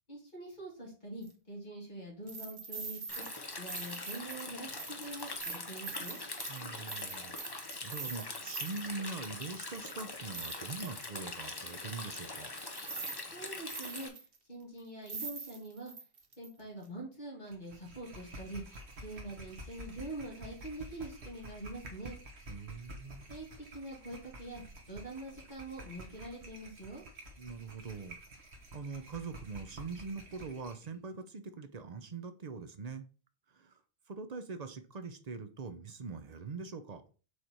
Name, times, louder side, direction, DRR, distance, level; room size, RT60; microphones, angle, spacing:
voice 1, 0.1-3.3 3.6-6.2 13.3-14.1 14.5-15.9 16.4-18.6 19.0-22.2 23.3-23.5 23.7-27.0, right 1 dB, 45° left, 2.8 m, -44 dB
sound 1, 1.2-1.3 2.3-8.9 9.4-9.5 9.9-11.2 12.0-12.1 12.6-13.2 13.5-14.4 14.8-14.9 15.1-16.5 16.8-16.9, right 5 dB, 65° right, 1.2 m, -44 dB
Stream, 3.1-14.1, left 2 dB, 25° left, 0.8 m, -43 dB
voice 2, 6.5-12.5 22.5-23.3 27.4-28.2 28.7-33.1 33.5-33.8 34.1-37.0, right 4 dB, 45° right, 0.8 m, -43 dB
water bottle, 17.5-30.9, equal, 90° right, 1.6 m, -50 dB
6.4 x 3.4 x 4.4 m
omnidirectional pair, 1.1 m